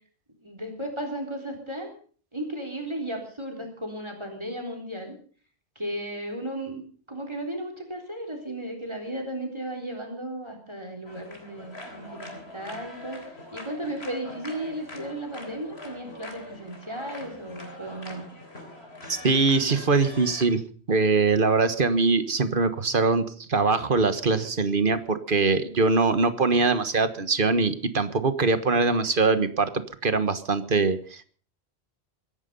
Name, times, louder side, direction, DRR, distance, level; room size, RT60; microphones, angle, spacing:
voice 1, 0.4-1.9 2.3-5.1 5.8-13.2 13.5-18.3, right 1 dB, 25° right, 4 dB, 3.9 m, -35 dB
sound 1, 11.0-20.5, left 2 dB, 70° left, 3.8 m, -43 dB
voice 2, 19.1-20.6 20.9-31.2, right 4 dB, 50° right, 11 dB, 1.6 m, -23 dB
23.5 x 11.0 x 5.5 m, 0.43 s
omnidirectional pair, 1.1 m